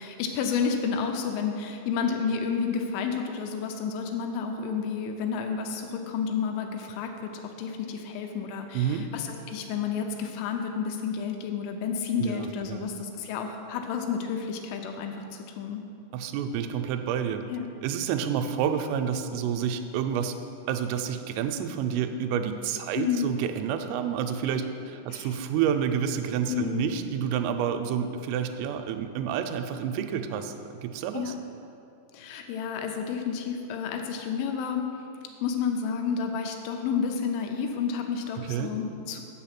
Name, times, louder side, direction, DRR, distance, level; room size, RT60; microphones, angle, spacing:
voice 1, 0.0-15.8 17.5-17.7 22.9-23.3 25.1-25.3 26.5-26.9 31.1-31.4 32.1-34.9 35.4-39.2, left 6 dB, 80° left, 4 dB, 2.9 m, -30 dB
voice 2, 8.7-9.1 12.2-12.8 16.1-17.4 17.8-20.3 20.7-31.3 38.5-38.7, right 8 dB, 85° right, 7 dB, 3.1 m, -29 dB
7.6 x 7.0 x 5.8 m, 2.6 s
omnidirectional pair, 5.7 m